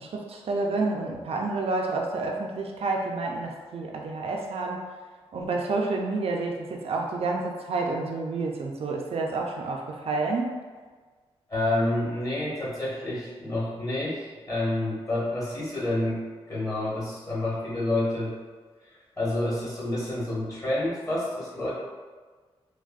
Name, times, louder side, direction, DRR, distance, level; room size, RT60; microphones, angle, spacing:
voice 1, 0.0-4.9 5.3-10.5, right 3 dB, 65° right, 0 dB, 0.4 m, -29 dB
voice 2, 11.5-18.3 18.8-21.7, left 1 dB, 35° left, -7 dB, 1.3 m, -29 dB
3.3 x 2.1 x 2.3 m, 1.4 s
cardioid pair, 75°, 11 cm